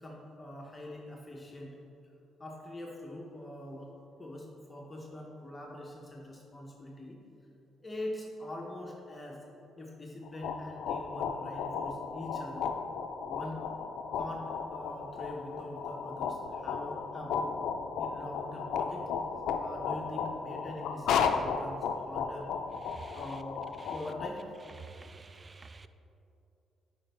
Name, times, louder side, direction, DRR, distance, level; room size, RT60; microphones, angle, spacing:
voice 1, 0.0-1.7 2.4-3.9 4.2-7.2 7.8-9.4 9.8-12.7 13.3-13.6 14.1-17.5 18.0-19.1 19.6-22.5 23.1-23.6 23.9-24.5, left 1 dB, 20° left, -2 dB, 0.9 m, -43 dB
sound 1, 10.3-24.3, left 6 dB, 80° left, 0.4 m, -34 dB
voice 2, 22.9-23.4 23.8-23.9 24.8-25.9, right 4 dB, 30° right, 11 dB, 0.3 m, -49 dB
8.8 x 5.1 x 3.4 m, 2.7 s
cardioid pair, 90°, 0 cm